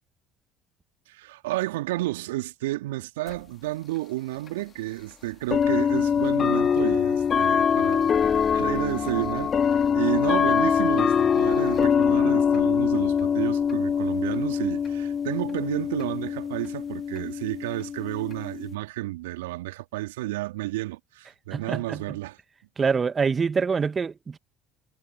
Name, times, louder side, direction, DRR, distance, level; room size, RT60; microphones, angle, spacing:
voice 1, 1.1-22.4, right 18 dB, 75° right, 3.3 m, -31 dB
sound 1, 3.3-3.4 4.5-4.6 5.5-18.7, left 7 dB, 40° left, 4.1 m, -24 dB
voice 2, 21.5-22.0 22.8-24.4, right 5 dB, 30° right, 1.7 m, -25 dB
hypercardioid pair, 60°, 0 cm